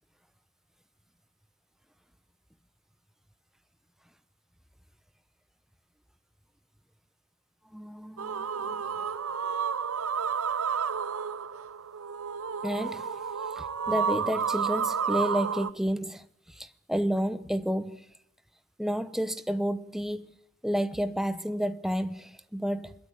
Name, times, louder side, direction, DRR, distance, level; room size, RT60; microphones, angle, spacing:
voice 1, 7.7-9.0 12.6-13.1 13.6-18.0 18.8-20.3 20.6-22.9, equal, ahead, 0.8 m, -31 dB
sound 1, 8.2-15.7, right 6 dB, 80° right, 0.8 m, -31 dB
23.0 x 21.0 x 8.4 m
head